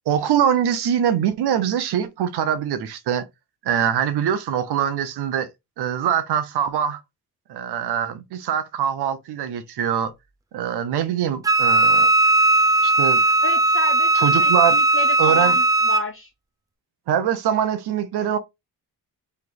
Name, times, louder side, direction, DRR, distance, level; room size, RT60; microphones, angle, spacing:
voice 1, 0.1-3.3 3.6-5.5 5.8-7.0 7.5-10.1 10.5-12.1 12.8-13.2 14.1-14.8 15.2-15.6 17.1-18.4, right 9 dB, 80° right, 0.8 m, -23 dB
Wind instrument woodwind instrument, 11.4-16.1, right 2 dB, 10° right, 0.5 m, -17 dB
voice 2, 13.4-16.3, left 4 dB, 35° left, 0.7 m, -32 dB
3.3 x 2.9 x 3.9 m
cardioid pair, 65°, 39 cm